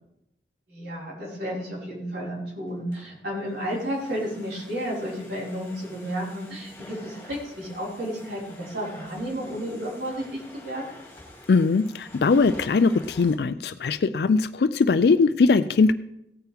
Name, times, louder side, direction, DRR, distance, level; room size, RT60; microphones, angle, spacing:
voice 1, 0.7-10.8, equal, 80° right, -5 dB, 4.9 m, -32 dB
Domestic sounds home sounds, 2.7-13.3, left 1 dB, 15° left, 2.6 m, -47 dB
voice 2, 11.5-15.9, left 4 dB, 65° left, 12 dB, 0.4 m, -20 dB
16.5 x 9.1 x 3.5 m, 0.81 s
head